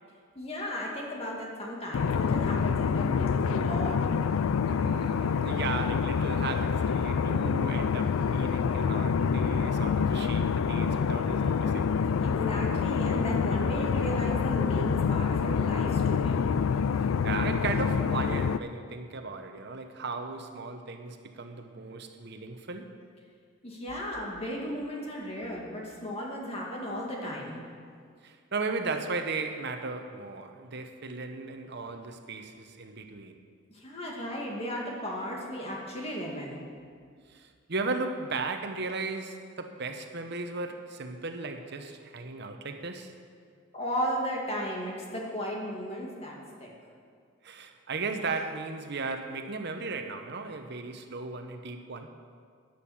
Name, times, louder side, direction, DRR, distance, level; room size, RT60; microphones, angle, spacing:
voice 1, 0.3-4.0 12.2-16.4 23.6-27.6 33.7-36.6 43.7-46.7, equal, 30° left, -2 dB, 2.2 m, -35 dB
sound 1, 1.9-18.6, left 6 dB, 85° left, 0.4 m, -27 dB
voice 2, 4.7-11.9 17.2-22.9 28.2-33.4 37.3-43.2 47.4-52.1, right 3 dB, 55° right, 6 dB, 1.0 m, -36 dB
10.5 x 10.5 x 7.2 m, 2.1 s
head